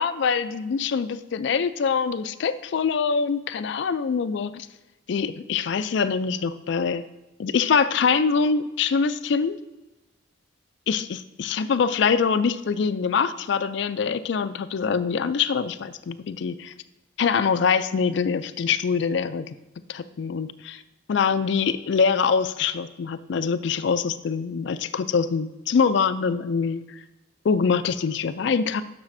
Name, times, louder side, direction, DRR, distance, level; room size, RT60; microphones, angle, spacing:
voice 1, 0.0-4.7 5.1-7.0 7.4-9.6 10.9-16.7 17.2-19.5 19.9-20.8 21.1-26.8 27.4-28.8, left 5 dB, 60° left, 13 dB, 0.3 m, -24 dB
11.5 x 6.1 x 2.6 m, 1.1 s
head